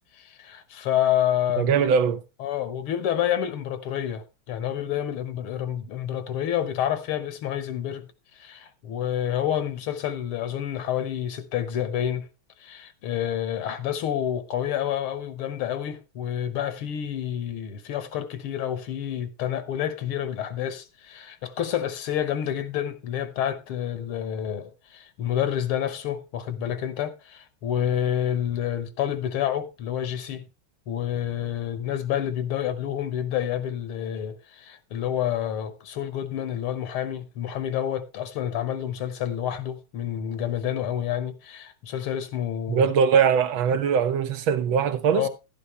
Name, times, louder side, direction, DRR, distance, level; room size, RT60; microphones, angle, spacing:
voice 1, 0.3-1.9 2.4-8.1 8.4-12.3 12.6-30.4 30.9-42.8 45.1-45.3, left 10 dB, 80° left, 2.0 m, -28 dB
voice 2, 1.6-2.2 42.7-45.3, right 7 dB, 70° right, 1.5 m, -21 dB
11.5 x 10.0 x 3.2 m
omnidirectional pair, 2.4 m